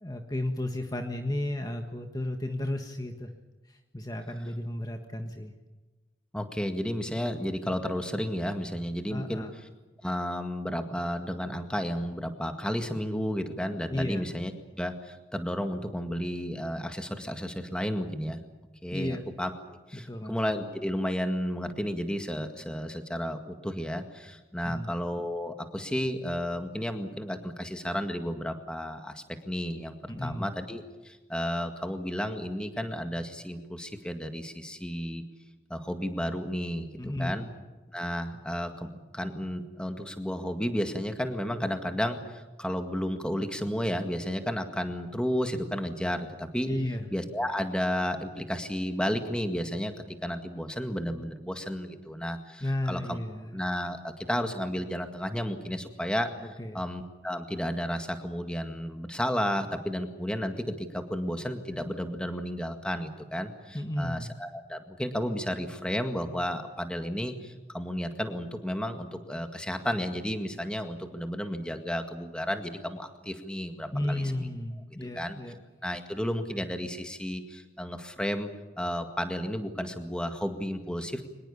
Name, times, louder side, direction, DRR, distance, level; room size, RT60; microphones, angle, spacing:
voice 1, 0.0-3.3 3.7-5.5 9.1-9.5 13.9-14.2 18.9-19.2 19.9-20.4 24.6-24.9 30.1-30.5 37.0-37.5 46.7-47.1 52.6-53.6 56.4-56.8 63.7-64.3 73.9-75.5, left 1 dB, 20° left, 5 dB, 1.5 m, -33 dB
voice 2, 6.3-9.5 10.0-14.5 14.8-18.4 18.8-19.5 19.9-35.2 35.7-37.5 37.9-46.7 47.1-49.9 50.2-53.2 53.5-56.3 56.7-74.5 75.1-75.4 75.8-78.5 78.8-81.2, equal, 5° left, 6 dB, 1.9 m, -32 dB
24.5 x 21.0 x 7.1 m, 1.2 s
head